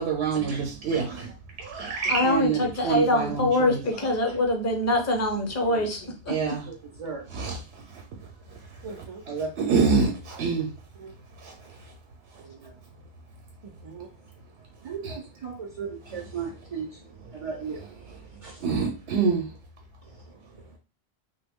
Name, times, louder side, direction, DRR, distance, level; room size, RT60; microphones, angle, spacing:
voice 1, 0.0-1.3 1.6-4.4 6.3-6.7 7.3-7.6 8.2-9.1 9.6-10.7 11.4-11.9 15.0-15.2 16.1-16.3 18.1-18.2 18.6-19.5, right 5 dB, 85° right, 0.9 m, -27 dB
voice 2, 2.1-6.0, left 1 dB, 20° left, 0.5 m, -24 dB
voice 3, 6.7-7.2 8.8-9.8 11.0-11.1 12.4-12.7 13.6-14.1 14.8-18.6 20.0-20.2 20.6-20.8, right 5 dB, 45° right, 0.4 m, -37 dB
3.0 x 2.2 x 3.5 m
omnidirectional pair, 1.1 m